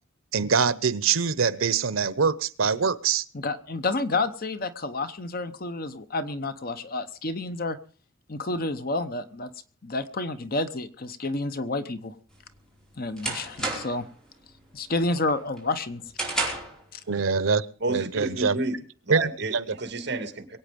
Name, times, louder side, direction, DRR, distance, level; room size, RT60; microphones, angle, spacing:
voice 1, 0.3-3.2 17.1-18.6 19.1-19.6, right 5 dB, 85° right, 0.8 m, -24 dB
voice 2, 3.3-7.8 8.3-9.5 9.8-12.2 13.0-14.0 14.7-16.0 16.9-17.0, left 2 dB, 45° left, 0.9 m, -29 dB
sound 1, 12.3-14.1 14.5-14.9 15.3-16.8, right 2 dB, 5° left, 4.6 m, -32 dB
voice 3, 17.8-20.6, right 2 dB, 55° right, 2.4 m, -31 dB
23.0 x 8.9 x 5.2 m
head